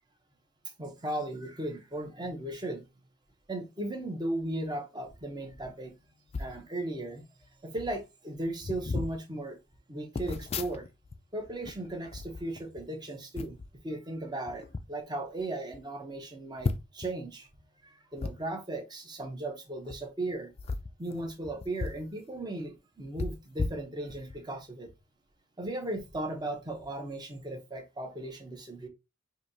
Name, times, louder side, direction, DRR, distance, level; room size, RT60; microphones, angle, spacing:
voice 1, 0.8-2.8 3.5-5.9 6.4-7.2 7.6-9.6 9.9-10.9 11.3-13.6 13.8-17.5 17.8-20.5 21.0-24.9 25.6-28.9, right 1 dB, 20° right, 0.8 m, -36 dB
sound 1, 6.3-6.6 7.4-7.5 7.7-8.0 8.6-9.2 10.1-11.2 11.5-12.9 13.3-13.7 14.5-14.8 15.4-15.5 15.7-15.8 16.6-17.1 18.2-18.3 19.8-20.0 20.5-22.1 22.4-22.5 23.2-24.4 24.9-25.0, left 3 dB, 30° left, 0.3 m, -35 dB
5.0 x 2.7 x 2.6 m
head